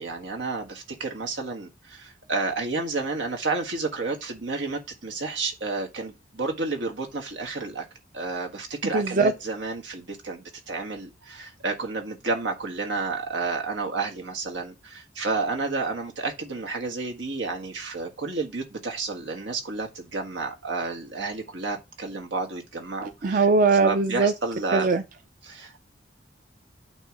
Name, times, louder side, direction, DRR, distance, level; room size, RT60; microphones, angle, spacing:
voice 1, 0.0-7.8 8.1-23.5 23.8-24.9 25.4-25.8, right 3 dB, 90° right, 1.5 m, -31 dB
voice 2, 8.9-9.3 23.2-24.3 24.7-25.0, right 4 dB, 50° right, 0.5 m, -20 dB
9.0 x 3.1 x 5.1 m
head